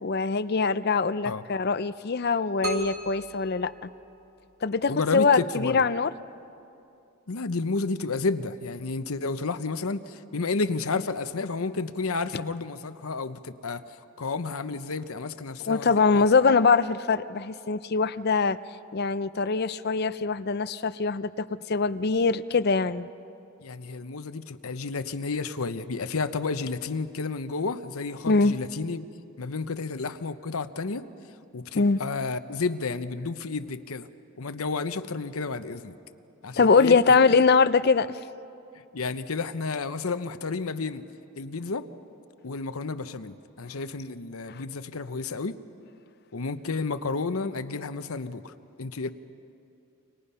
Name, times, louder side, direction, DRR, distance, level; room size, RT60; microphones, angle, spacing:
voice 1, 0.0-3.9 4.6-6.1 15.7-18.6 18.9-23.1 28.3-28.5 31.7-32.0 36.6-38.1 44.5-44.6, left 4 dB, 45° left, 14 dB, 0.5 m, -23 dB
sound 1, 2.6-4.5, right 3 dB, 70° right, 2.3 m, -36 dB
voice 2, 4.9-5.9 7.3-13.8 14.2-16.2 23.6-29.0 29.4-31.1 31.5-34.1 34.4-36.0 36.4-37.0 38.9-41.0 41.4-41.9 42.4-45.6 46.3-48.5 48.8-49.1, left 4 dB, 75° left, 11 dB, 0.9 m, -31 dB
29.5 x 25.0 x 5.6 m, 2.7 s
head